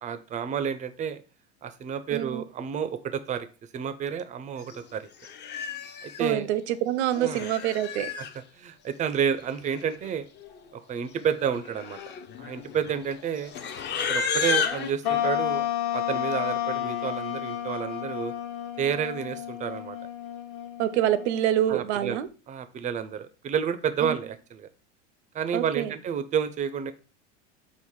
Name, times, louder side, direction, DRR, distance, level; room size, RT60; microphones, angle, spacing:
voice 1, 0.0-1.2 1.6-3.5 3.7-5.1 6.0-6.5 7.2-7.5 8.1-8.3 8.5-10.3 10.7-12.0 12.4-13.5 14.1-18.3 18.8-20.0 21.7-22.2 22.5-24.7 25.3-26.9, right 8 dB, 20° right, 11 dB, 0.4 m, -30 dB
voice 2, 2.1-2.4 6.2-8.1 20.8-22.3 24.0-24.2 25.5-25.9, right 12 dB, 70° right, 13 dB, 0.6 m, -26 dB
Livestock farm animals working animals, 4.7-4.8 5.2-6.2 7.1-8.3 9.4-9.5 9.7-10.1 10.4-10.7 11.3-14.9, left 6 dB, 30° left, 0.5 m, -32 dB
sound 1, 15.0-21.7, left 11 dB, 55° left, 1.0 m, -31 dB
5.5 x 2.1 x 4.6 m, 0.37 s
hypercardioid pair, 100°, 35 cm